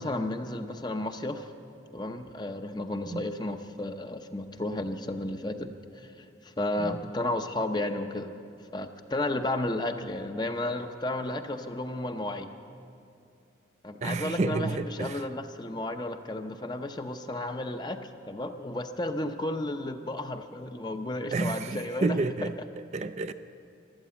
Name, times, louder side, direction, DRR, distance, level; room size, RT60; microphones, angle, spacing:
voice 1, 0.0-1.5 1.9-8.3 8.7-12.5 13.8-22.5, left 1 dB, 25° left, 0.7 m, -33 dB
voice 2, 14.0-15.3 21.3-23.3, right 3 dB, 35° right, 0.4 m, -30 dB
14.5 x 12.5 x 8.2 m
head